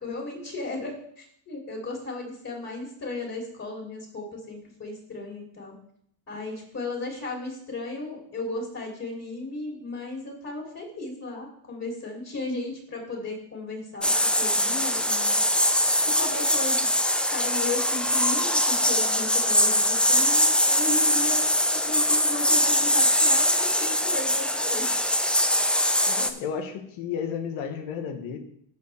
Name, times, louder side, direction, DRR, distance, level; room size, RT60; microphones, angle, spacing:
voice 1, 0.0-5.7 6.3-15.4 16.0-16.9 17.3-24.9, left 2 dB, 30° left, -2 dB, 3.4 m, -35 dB
sound 1, 14.0-26.3, equal, ahead, 0.5 m, -22 dB
voice 2, 26.1-28.4, left 7 dB, 75° left, 5 dB, 1.6 m, -32 dB
13.5 x 4.7 x 3.6 m, 0.66 s
cardioid pair, 95°, 48 cm